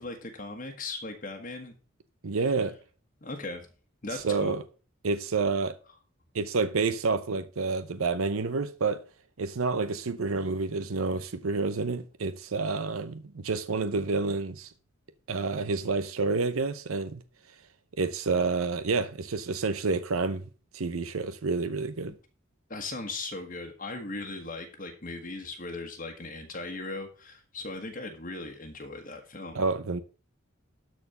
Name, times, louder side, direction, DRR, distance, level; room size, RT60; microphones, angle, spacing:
voice 1, 0.0-1.7 3.2-3.6 4.0-4.6 22.1-22.2 22.7-29.6, left 2 dB, 40° left, 1.4 m, -38 dB
voice 2, 2.2-2.7 4.1-4.6 5.0-5.7 6.3-9.0 9.4-14.7 15.3-17.2 18.0-20.4 20.7-22.1 29.5-30.0, right 4 dB, 85° right, 0.7 m, -29 dB
13.0 x 4.5 x 6.6 m
head